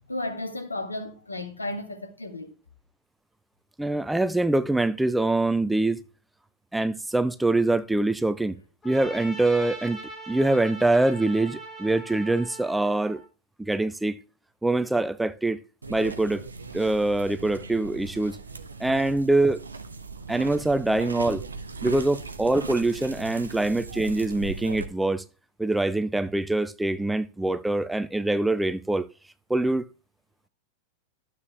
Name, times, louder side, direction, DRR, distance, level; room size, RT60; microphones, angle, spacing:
voice 1, 0.1-2.5, left 2 dB, 80° left, 1.7 m, -33 dB
voice 2, 3.8-6.0 6.7-8.5 8.8-10.0 10.3-13.2 13.6-14.2 14.6-15.6 15.9-16.4 16.7-18.4 18.8-19.6 20.3-21.4 21.8-25.2 25.6-29.1 29.5-29.8, right 2 dB, 5° right, 0.5 m, -24 dB
Trumpet, 8.8-13.3, right 2 dB, 15° left, 5.0 m, -41 dB
sound 1, 15.8-24.9, right 4 dB, 75° right, 1.0 m, -39 dB
12.5 x 7.4 x 3.5 m
figure-of-eight pair, 90°, 0 cm